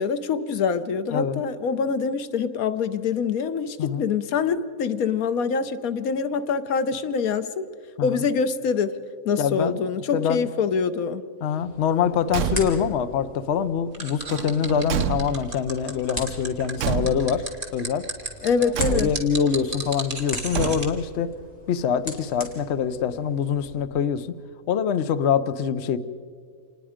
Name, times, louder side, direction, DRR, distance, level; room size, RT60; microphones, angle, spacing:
voice 1, 0.0-7.7 8.0-8.9 9.2-11.2 18.4-19.1, left 5 dB, 80° left, 11 dB, 1.3 m, -25 dB
voice 2, 1.1-1.4 3.8-4.0 8.0-8.2 9.4-9.8 10.1-10.5 11.4-17.4 17.7-18.0 18.6-21.3 21.7-24.4 24.7-26.0, left 7 dB, 60° left, 11 dB, 0.9 m, -24 dB
sound 1, 11.7-23.8, equal, 25° left, 3.3 m, -40 dB
Car / Truck / Slam, 12.2-13.0 14.2-15.7 16.8-17.5 18.7-19.4 20.5-21.2, right 8 dB, 65° right, 1.0 m, -28 dB
sound 2, 13.9-20.9, right 2 dB, 35° right, 2.4 m, -33 dB
27.0 x 20.0 x 5.0 m, 2.1 s
omnidirectional pair, 1.5 m